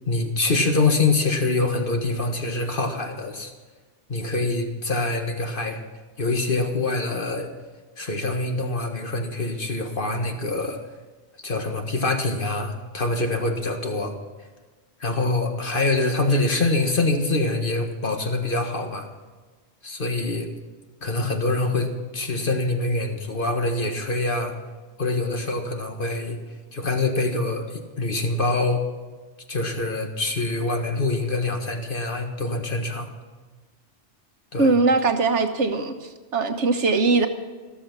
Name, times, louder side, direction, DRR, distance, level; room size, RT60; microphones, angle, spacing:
voice 1, 0.1-3.5 4.1-5.8 6.2-7.5 8.0-10.8 11.4-14.1 15.0-19.1 19.8-20.5 21.0-24.5 25.0-26.4 26.7-28.8 29.5-33.1 34.5-34.7, left 2 dB, 45° left, 4 dB, 1.7 m, -25 dB
voice 2, 34.6-37.3, right 3 dB, 75° right, 7 dB, 1.5 m, -21 dB
13.5 x 13.5 x 6.0 m, 1.3 s
omnidirectional pair, 1.2 m